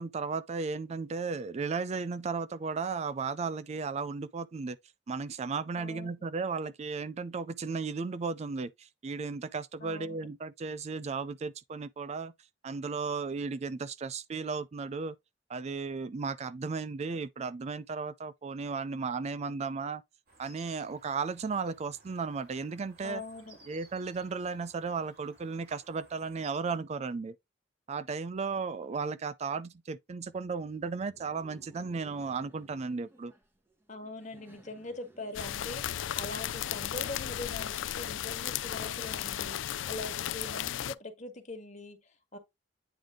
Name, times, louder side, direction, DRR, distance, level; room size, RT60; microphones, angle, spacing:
voice 1, 0.0-4.8 5.1-12.3 12.6-15.1 15.5-20.0 20.4-23.2 23.7-27.4 27.9-33.3, right 4 dB, 35° right, 0.4 m, -35 dB
voice 2, 5.7-6.1 9.8-10.3 23.0-23.6 33.9-42.4, left 2 dB, 40° left, 1.7 m, -42 dB
sound 1, 20.3-26.6, right 4 dB, 55° right, 3.2 m, -58 dB
Laughter, 30.2-36.5, right 1 dB, 10° right, 1.1 m, -59 dB
sound 2, 35.3-40.9, left 11 dB, 90° left, 0.4 m, -35 dB
9.0 x 3.4 x 3.7 m
head